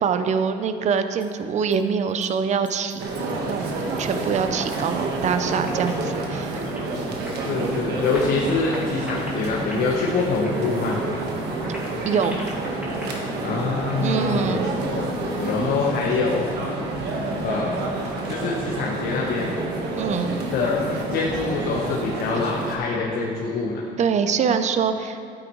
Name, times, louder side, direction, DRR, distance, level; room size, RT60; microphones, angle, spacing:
voice 1, 0.0-3.1 3.5-3.7 4.0-6.6 12.1-12.4 14.0-14.7 19.9-20.4 24.0-25.2, right 6 dB, 45° right, 9 dB, 0.6 m, -24 dB
sound 1, 1.0-1.3 1.7-1.8 2.1-2.3 2.6-4.6 4.8-5.2 5.4-7.6 7.8-14.2, equal, 10° right, 2.4 m, -42 dB
sound 2, 3.0-22.8, right 2 dB, 75° right, 1.3 m, -29 dB
voice 2, 7.4-11.0 13.4-16.8 17.4-17.9 18.3-19.5 20.5-23.8, left 4 dB, 75° left, -3 dB, 1.2 m, -25 dB
12.5 x 8.8 x 3.1 m, 2.5 s
cardioid pair, 110°, 17 cm